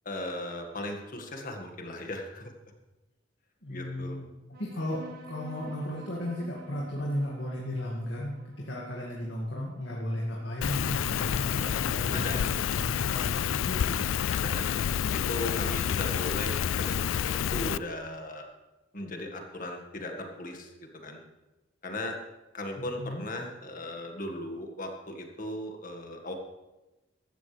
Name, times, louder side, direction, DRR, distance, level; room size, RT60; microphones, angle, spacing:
voice 1, 0.1-2.5 3.7-4.2 11.1-11.4 12.1-12.4 14.3-14.8 15.1-18.5 18.9-20.7 21.0-21.2 21.8-22.2 22.5-26.3, left 1 dB, 45° left, 3 dB, 1.8 m, -37 dB
voice 2, 3.6-5.0 5.3-14.1 22.8-23.2, left 1 dB, 65° left, -4 dB, 2.2 m, -35 dB
sound 1, 4.5-11.5, right 1 dB, 50° right, 1.4 m, -49 dB
Rain, 10.6-17.8, left 9 dB, 90° left, 0.3 m, -29 dB
15.5 x 13.0 x 3.4 m, 1.1 s
head